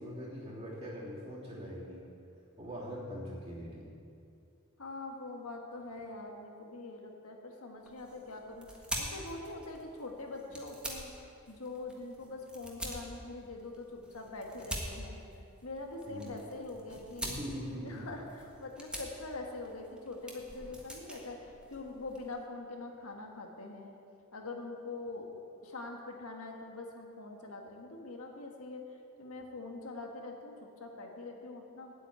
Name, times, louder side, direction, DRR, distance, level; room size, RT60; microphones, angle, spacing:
voice 1, 0.0-2.0 2.6-3.9 16.0-16.3 17.2-18.1, equal, 30° right, -7 dB, 3.2 m, -42 dB
voice 2, 4.8-8.7 9.0-11.1 11.5-15.2 15.6-17.4 17.8-24.0 24.3-25.3 25.6-28.8 29.2-31.9, left 2 dB, 90° left, 1 dB, 1.6 m, -44 dB
sound 1, 7.8-22.3, equal, 5° right, 1.3 m, -45 dB
8.4 x 8.3 x 9.1 m, 2.6 s
head